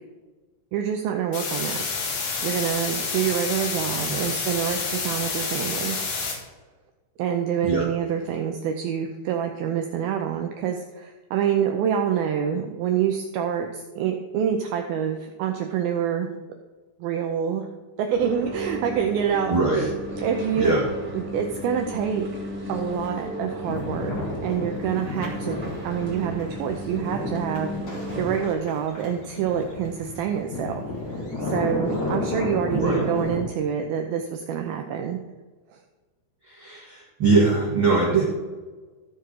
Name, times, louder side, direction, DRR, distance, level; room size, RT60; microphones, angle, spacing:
voice 1, 0.7-1.8 2.4-6.0 7.2-16.3 17.0-17.7 18.0-19.9 20.2-20.8 21.1-22.3 22.7-24.1 24.4-30.8 31.4-35.2 35.7-35.8, right 8 dB, 90° right, 4 dB, 2.1 m, -26 dB
sound 1, 1.3-6.3, left 4 dB, 70° left, 3.9 m, -28 dB
sound 2, 18.1-28.5, equal, 20° right, 2.5 m, -35 dB
voice 2, 19.5-19.9 20.5-20.8 32.7-33.0 36.4-38.2, right 3 dB, 45° right, -6 dB, 1.7 m, -22 dB
sound 3, 23.6-33.4, left 2 dB, 40° left, 1.8 m, -32 dB
14.0 x 4.6 x 6.3 m, 1.3 s
omnidirectional pair, 5.1 m